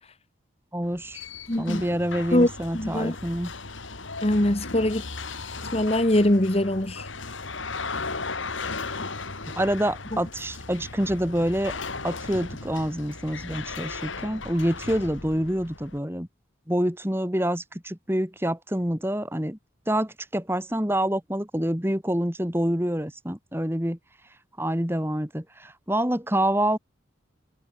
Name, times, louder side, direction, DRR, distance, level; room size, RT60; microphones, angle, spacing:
voice 1, 0.7-1.2 1.6-3.5 9.6-11.7 12.0-16.3 16.7-19.6 19.9-24.0 24.6-26.8, right 1 dB, 10° right, 2.7 m, -27 dB
sound 1, 0.8-16.0, left 4 dB, 80° left, 3.4 m, -36 dB
voice 2, 1.5-1.8 2.3-2.5 2.7-3.2 4.2-5.0 5.7-7.1 10.1-10.2, left 1 dB, 30° left, 1.4 m, -22 dB
head